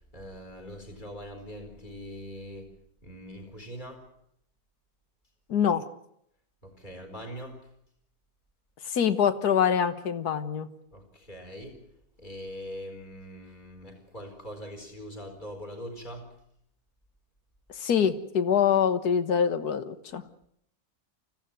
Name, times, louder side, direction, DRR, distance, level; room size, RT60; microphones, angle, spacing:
voice 1, 0.1-2.7 3.0-4.0 6.6-7.6 10.9-11.8 12.2-16.3, equal, 30° left, 3 dB, 4.7 m, -42 dB
voice 2, 5.5-5.8 8.9-10.7 17.8-20.2, left 7 dB, 75° left, 11 dB, 1.8 m, -24 dB
25.0 x 15.5 x 9.1 m, 0.72 s
omnidirectional pair, 1.7 m